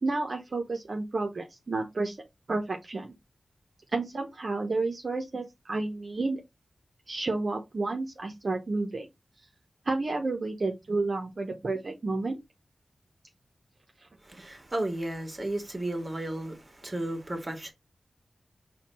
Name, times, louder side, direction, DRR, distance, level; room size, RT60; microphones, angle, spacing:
voice 1, 0.0-2.2 2.5-3.1 3.9-6.4 7.1-9.1 9.9-12.4 14.3-14.4, right 3 dB, 65° right, 0.7 m, -31 dB
voice 2, 14.2-17.7, right 1 dB, 35° right, 1.5 m, -33 dB
4.3 x 2.3 x 4.1 m
cardioid pair, 45°, 0 cm